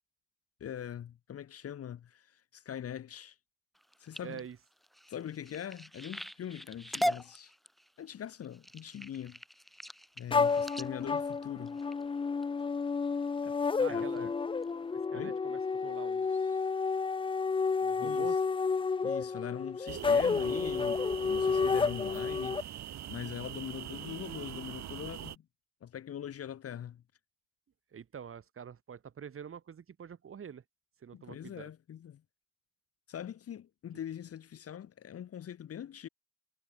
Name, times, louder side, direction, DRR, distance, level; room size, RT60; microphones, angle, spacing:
voice 1, 0.6-3.4 4.0-4.4 5.1-7.5 8.0-9.4 10.2-11.8 13.4-14.3 15.1-15.4 18.0-18.3 19.0-22.7 23.1-25.4 25.8-27.0 31.1-32.2 33.1-36.1, left 10 dB, 50° left, 1.1 m, -42 dB
sound 1, 3.8-12.4 13.0-13.4 13.8-14.2 14.6-14.7 15.0-15.1, equal, ahead, 2.5 m, -40 dB
voice 2, 4.2-4.6 13.8-14.4 14.8-16.6 17.8-18.4 27.9-30.6 31.0-31.7, right 7 dB, 45° right, 2.3 m, -46 dB
sound 2, 10.3-22.6, left 5 dB, 20° left, 0.4 m, -31 dB
sound 3, 19.9-25.4, right 11 dB, 65° right, 1.4 m, -43 dB
cardioid pair, 90°, 30 cm